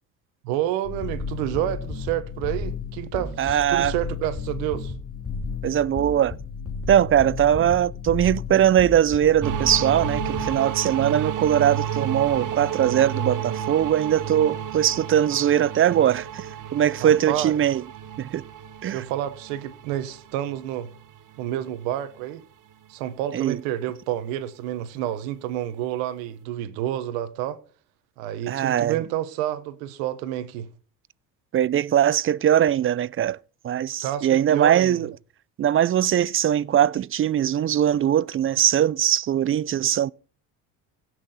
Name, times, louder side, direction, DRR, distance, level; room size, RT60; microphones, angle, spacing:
voice 1, 0.4-4.9 17.0-17.6 18.9-20.9 21.4-22.4 22.9-27.6 28.2-30.7 34.0-35.0, right 12 dB, 85° right, 1.1 m, -29 dB
sound 1, 0.8-10.5, left 4 dB, 35° left, 2.3 m, -33 dB
voice 2, 3.4-3.9 5.6-6.4 6.9-17.8 18.2-18.4 18.8-19.0 23.3-23.6 28.5-29.0 31.5-33.4 33.6-35.1 35.6-40.1, right 10 dB, 35° right, 0.4 m, -21 dB
sound 2, 9.4-21.9, right 9 dB, 50° right, 1.1 m, -32 dB
16.5 x 6.1 x 4.2 m
supercardioid pair, 75°, 39 cm